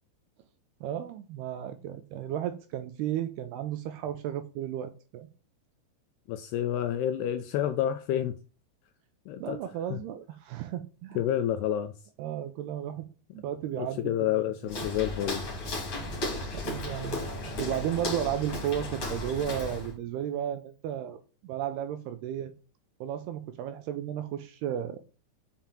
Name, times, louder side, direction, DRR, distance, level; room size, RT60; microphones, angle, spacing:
voice 1, 0.8-5.3 9.4-11.2 12.2-13.1 13.3-14.0 16.0-16.2 16.5-22.5 23.0-25.0, right 10 dB, 80° right, 2.4 m, -34 dB
voice 2, 6.3-8.4 9.3-9.6 9.9-10.0 11.2-11.9 13.8-15.4, left 11 dB, 80° left, 2.4 m, -29 dB
Walk footsteps, 14.7-19.9, left 2 dB, 35° left, 3.1 m, -35 dB
7.1 x 5.8 x 7.5 m
omnidirectional pair, 5.3 m